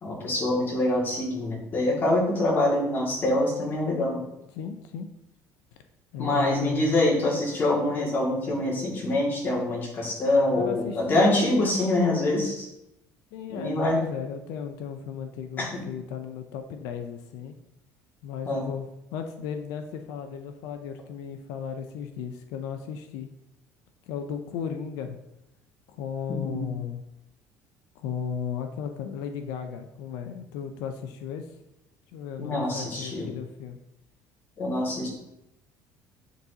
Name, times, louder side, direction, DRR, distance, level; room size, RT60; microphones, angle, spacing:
voice 1, 0.0-4.2 6.2-12.7 13.5-14.0 15.6-15.8 18.4-18.7 26.3-26.6 32.4-33.3 34.6-35.1, left 1 dB, 35° left, -3 dB, 2.1 m, -25 dB
voice 2, 4.5-5.1 6.1-6.9 10.5-11.8 13.3-17.5 18.2-23.3 24.1-25.2 25.9-27.0 28.0-31.5 32.1-33.8, left 7 dB, 80° left, 7 dB, 0.5 m, -35 dB
9.3 x 4.0 x 2.8 m, 0.86 s
cardioid pair, 135°, 6 cm